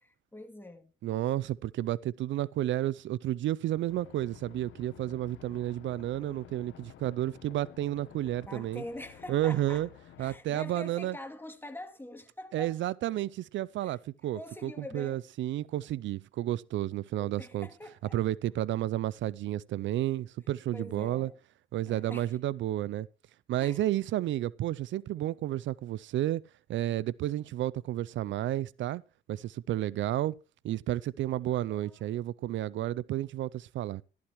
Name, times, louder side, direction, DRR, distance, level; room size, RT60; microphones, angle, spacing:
voice 1, 0.0-0.9 8.4-9.9 10.2-12.8 13.8-14.0 14.3-15.2 17.2-18.2 20.7-21.4 21.9-22.3 23.6-23.8 31.5-32.0, left 1 dB, 10° left, 2.3 m, -45 dB
voice 2, 1.0-8.8 9.3-9.9 10.2-11.1 12.5-17.7 18.1-21.3 21.7-23.1 23.5-26.4 26.7-29.0 29.3-30.4 30.6-34.0, right 13 dB, 70° right, 0.4 m, -31 dB
sound 1, 3.9-10.4, left 11 dB, 80° left, 1.0 m, -52 dB
13.0 x 12.0 x 3.0 m
cardioid pair, 90°, 20 cm